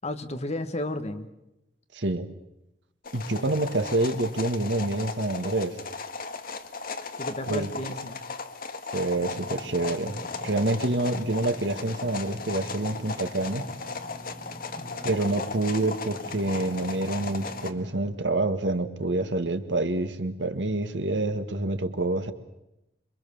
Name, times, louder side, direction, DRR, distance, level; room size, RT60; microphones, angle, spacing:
voice 1, 0.0-1.3 3.4-3.5 7.2-8.2 14.8-15.1, left 1 dB, 40° left, 9 dB, 1.6 m, -33 dB
voice 2, 1.9-2.3 3.1-5.8 7.5-7.7 8.9-13.7 15.0-22.3, right 2 dB, 85° right, 9 dB, 1.8 m, -27 dB
sound 1, 3.0-17.7, left 4 dB, 55° left, 1.6 m, -37 dB
Engine / Mechanisms, 9.1-18.1, equal, 10° right, 4.0 m, -45 dB
26.5 x 24.0 x 7.1 m, 0.90 s
head